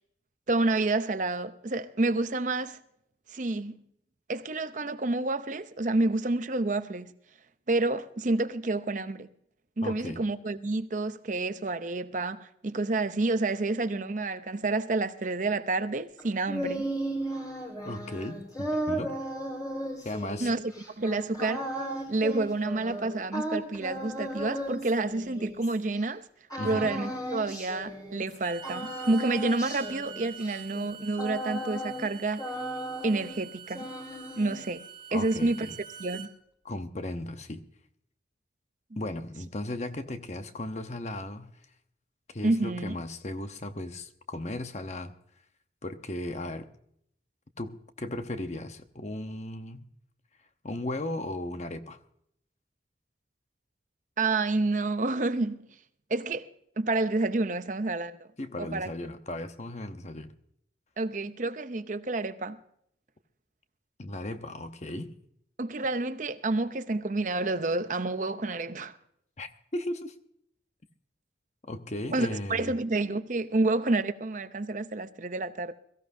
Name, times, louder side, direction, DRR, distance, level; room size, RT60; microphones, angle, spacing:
voice 1, 0.5-2.8 3.3-3.8 4.3-7.1 7.7-9.3 9.8-16.9 20.4-20.6 21.0-21.7 22.1-26.3 26.6-32.5 33.0-33.9 34.4-35.7 36.0-36.3 42.4-42.9 54.2-55.7 56.1-56.5 56.8-58.3 58.6-58.9 61.0-62.6 65.6-69.0 72.1-75.7, right 2 dB, 45° right, 0.7 m, -29 dB
voice 2, 9.8-10.2 17.8-19.2 20.0-20.5 26.6-26.9 35.1-35.8 36.6-37.6 39.0-41.5 42.3-45.1 45.8-46.7 47.6-49.8 50.6-52.0 58.4-60.3 64.0-65.1 69.4-70.2 71.6-72.7, left 1 dB, 40° left, 0.9 m, -36 dB
sound 1, 16.2-26.0 26.5-28.4 28.6-32.1 32.4-33.4 33.7-34.7, right 1 dB, 20° left, 3.9 m, -36 dB
Bowed string instrument, 28.3-36.3, right 8 dB, 25° right, 1.3 m, -46 dB
22.5 x 15.0 x 2.7 m
head